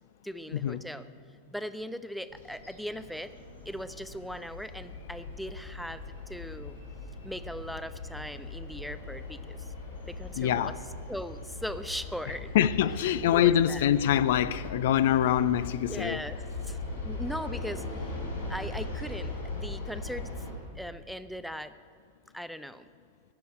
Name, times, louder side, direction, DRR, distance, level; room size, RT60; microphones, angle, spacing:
voice 1, 0.2-1.0 1.5-3.3 3.7-6.0 6.3-6.8 7.2-9.7 10.1-10.7 11.1-12.5 13.3-13.8 15.9-16.8 17.0-18.1 18.5-20.3 20.8-21.7 22.3-22.8, equal, ahead, 0.5 m, -39 dB
sound 1, 2.3-20.5, left 2 dB, 75° left, 3.5 m, -40 dB
voice 2, 10.4-10.7 12.5-16.2, left 10 dB, 55° left, 0.4 m, -24 dB
15.5 x 6.9 x 8.9 m
figure-of-eight pair, 90°, 0 cm